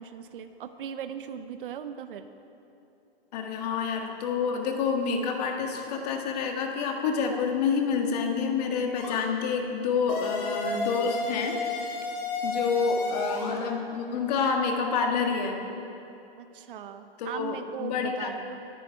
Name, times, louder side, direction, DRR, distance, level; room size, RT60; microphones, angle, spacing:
voice 1, 0.0-2.3 16.4-18.6, right 8 dB, 60° right, 9 dB, 0.8 m, -39 dB
voice 2, 3.3-11.9 12.4-15.6 17.2-18.3, left 5 dB, 40° left, 3 dB, 1.6 m, -28 dB
sound 1, 8.9-9.3 10.1-13.6, left 3 dB, 60° left, 4.0 m, -32 dB
22.0 x 10.0 x 4.6 m, 2.8 s
hypercardioid pair, 150°, 30 cm